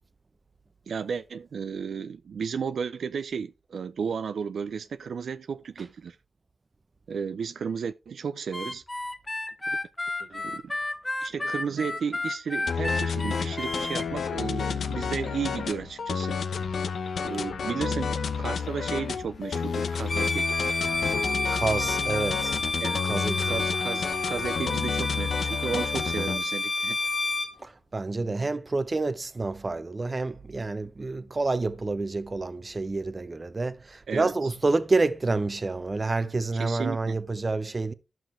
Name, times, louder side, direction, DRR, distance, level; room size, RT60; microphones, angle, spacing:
voice 1, 0.9-6.2 7.1-8.8 9.7-9.8 10.2-10.7 11.2-16.4 17.2-20.5 22.8-23.1 23.4-27.0 34.1-34.5 36.5-37.2, right 6 dB, 75° right, 0.4 m, -33 dB
Harmonica, 8.5-14.1, left 2 dB, 20° left, 1.1 m, -32 dB
sound 1, 12.7-26.4, left 6 dB, 75° left, 0.8 m, -30 dB
Bowed string instrument, 20.0-27.5, left 3 dB, 45° left, 1.4 m, -30 dB
voice 2, 21.5-22.6 23.1-23.5 27.6-37.9, right 3 dB, 35° right, 0.8 m, -28 dB
11.5 x 6.1 x 3.2 m
cardioid pair, 75°, 0 cm